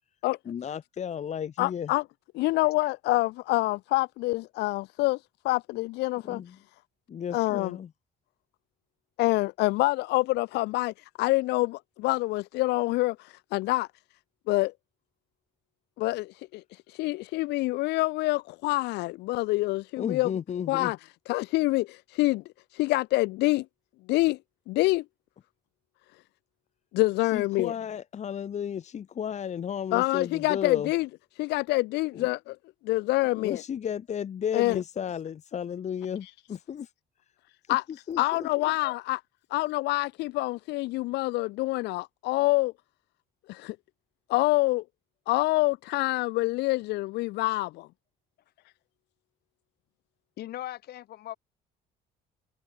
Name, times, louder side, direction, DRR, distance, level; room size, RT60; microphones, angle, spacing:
voice 1, 0.5-1.9 6.3-6.5 7.1-7.9 20.0-20.9 27.3-30.9 32.1-32.3 33.4-36.9 38.1-38.5, left 8 dB, 45° left, 1.6 m, -33 dB
voice 2, 1.6-2.0 2.3-5.2 5.4-6.4 7.3-7.8 9.2-13.9 14.5-14.7 16.0-20.3 20.7-21.0 21.3-22.4 22.7-23.6 24.1-24.4 24.7-25.0 26.9-27.7 29.9-31.1 31.4-32.6 32.8-33.6 34.5-34.8 36.2-36.3 37.7-39.2 39.5-42.7 43.5-43.8 44.3-44.8 45.3-47.9, left 20 dB, 85° left, 1.0 m, -26 dB
voice 3, 50.4-51.4, left 14 dB, 70° left, 5.7 m, -39 dB
cardioid pair, 110°, 17 cm